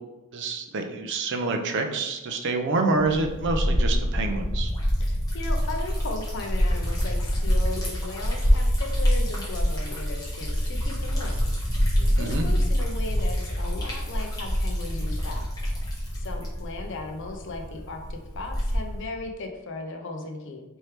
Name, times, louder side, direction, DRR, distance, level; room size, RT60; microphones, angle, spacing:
voice 1, 0.3-4.7 12.2-12.5, right 3 dB, 55° right, 4 dB, 0.5 m, -27 dB
Liquid, 3.0-19.1, equal, 15° left, 1.1 m, -26 dB
voice 2, 5.0-11.4 12.0-15.5 16.1-20.6, left 3 dB, 55° left, 4 dB, 0.5 m, -37 dB
4.4 x 3.2 x 3.2 m, 1.1 s
head